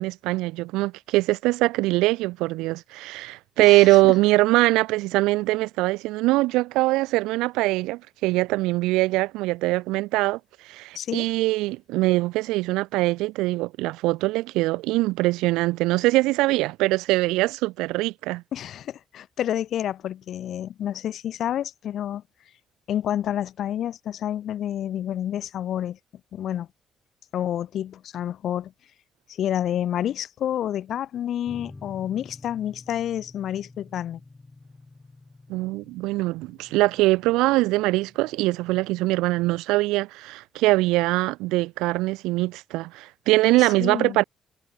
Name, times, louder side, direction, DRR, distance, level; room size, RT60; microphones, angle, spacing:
voice 1, 0.0-10.4 10.6-18.4 35.5-44.2, right 20 dB, 80° right, 0.6 m, -22 dB
voice 2, 3.6-4.1 10.9-11.2 18.5-22.2 22.9-26.0 26.3-26.7 27.3-28.7 29.3-34.2 43.6-44.2, left 11 dB, 70° left, 1.2 m, -29 dB
sound 1, 31.5-39.1, left 3 dB, 25° left, 3.0 m, -49 dB
hypercardioid pair, 45°, 0 cm